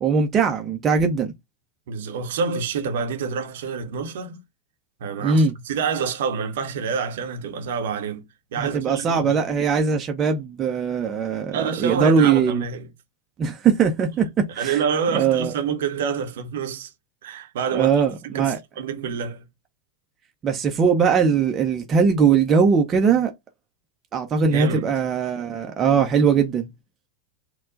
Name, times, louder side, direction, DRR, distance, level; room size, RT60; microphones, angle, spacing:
voice 1, 0.0-1.3 5.2-5.5 8.6-12.6 13.4-14.8 15.1-15.5 17.7-18.6 20.4-23.3 24.1-26.7, right 6 dB, 25° right, 0.7 m, -20 dB
voice 2, 1.9-4.4 5.0-8.2 8.5-9.4 11.5-12.9 14.6-16.9 17.2-19.5 24.5-24.9, right 6 dB, 55° right, 0.8 m, -27 dB
4.3 x 2.3 x 3.7 m
figure-of-eight pair, 90°, 0 cm